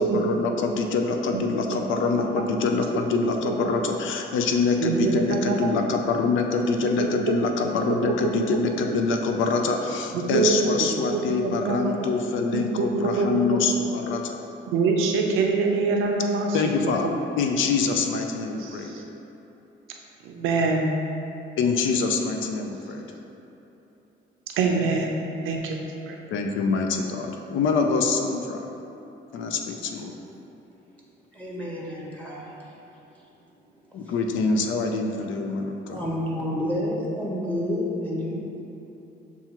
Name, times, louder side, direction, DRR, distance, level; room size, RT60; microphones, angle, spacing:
voice 1, 0.0-14.4 16.5-18.9 21.6-23.1 26.3-28.7 29.3-30.2 33.9-36.1, left 4 dB, 80° left, 3 dB, 0.4 m, -25 dB
voice 2, 4.8-5.7 7.0-7.3 8.2-8.3 10.1-10.6 11.1-11.9 12.5-13.4 14.7-16.6 18.6-19.0 20.2-20.9 24.6-26.1, right 4 dB, 85° right, 1 dB, 0.5 m, -25 dB
voice 3, 31.3-32.7 34.0-34.1 35.9-38.4, left 1 dB, 5° left, -5 dB, 0.9 m, -29 dB
6.9 x 2.4 x 2.9 m, 3.0 s
cardioid pair, 90°, 20 cm